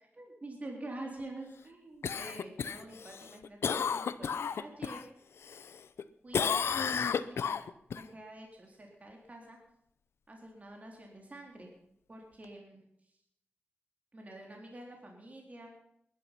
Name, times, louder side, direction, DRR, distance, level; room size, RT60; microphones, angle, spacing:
voice 1, 0.1-5.0 6.2-6.7 7.0-7.6 7.9-9.6 10.3-11.7 12.1-13.2 14.1-15.7, right 1 dB, 35° right, 1 dB, 3.6 m, -47 dB
Cough, 2.0-5.0 5.4-6.0 6.3-8.0 12.4-12.5, left 6 dB, 90° left, 0.6 m, -32 dB
20.0 x 11.5 x 5.8 m, 0.75 s
wide cardioid pair, 80°, 4 cm